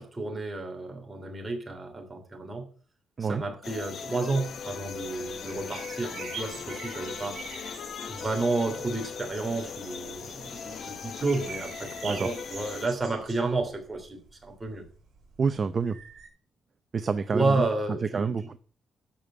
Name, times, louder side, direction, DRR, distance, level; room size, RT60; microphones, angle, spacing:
voice 1, 0.0-2.6 3.2-7.4 8.1-14.8 17.3-18.3, right 3 dB, 15° right, 3 dB, 3.2 m, -31 dB
sound 1, 3.6-12.9, left 6 dB, 50° left, 1.0 m, -39 dB
sound 2, 4.6-16.3, right 5 dB, 50° right, 6.2 m, -46 dB
voice 2, 15.4-16.0 16.9-17.7 18.1-18.6, right 5 dB, 30° right, 11 dB, 0.6 m, -28 dB
13.0 x 5.3 x 8.6 m, 0.41 s
cardioid pair, 160°, 0 cm